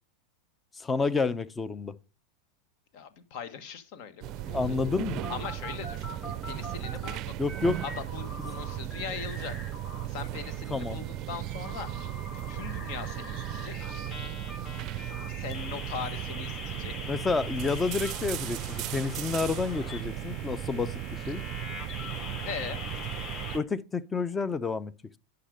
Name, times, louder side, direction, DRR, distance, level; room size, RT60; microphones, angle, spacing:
voice 1, 0.8-1.9 4.5-5.2 7.4-7.8 10.7-11.0 17.1-21.4 23.5-24.9, left 4 dB, 15° left, 0.6 m, -29 dB
voice 2, 2.9-4.8 5.3-7.4 7.8-9.5 10.0-12.1 12.5-14.0 15.4-16.9 22.5-22.8, left 7 dB, 60° left, 1.5 m, -40 dB
sound 1, 4.2-23.6, right 13 dB, 45° right, 0.5 m, -36 dB
sound 2, 4.5-7.1 7.4-10.0 10.4-23.6, left 3 dB, 40° left, 5.8 m, -43 dB
9.8 x 5.9 x 5.1 m
hypercardioid pair, 115°, 0 cm